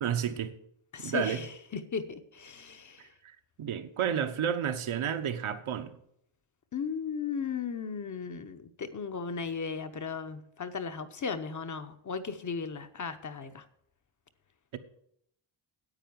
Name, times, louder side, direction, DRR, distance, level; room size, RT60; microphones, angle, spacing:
voice 1, 0.0-0.5 1.0-1.4 3.2-6.0 14.7-14.8, right 8 dB, 75° right, 1.2 m, -31 dB
voice 2, 0.9-3.1 6.7-13.6, left 5 dB, 35° left, 0.9 m, -36 dB
10.0 x 8.6 x 7.0 m
wide cardioid pair, 170°, 49 cm